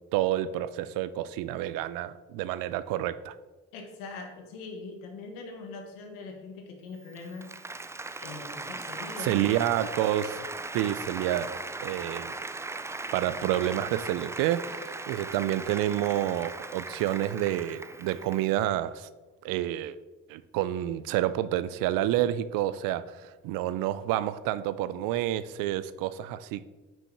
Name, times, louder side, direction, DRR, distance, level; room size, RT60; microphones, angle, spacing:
voice 1, 0.1-3.3 9.2-10.4 10.7-12.3 13.1-19.1 19.4-20.0 20.3-26.6, right 13 dB, 80° right, 0.5 m, -29 dB
voice 2, 3.7-7.5 8.2-9.3 10.7-10.9, left 3 dB, 90° left, 1.3 m, -42 dB
Applause, 7.0-18.6, right 2 dB, 10° right, 0.3 m, -38 dB
5.5 x 5.4 x 5.7 m
supercardioid pair, 55°, 33 cm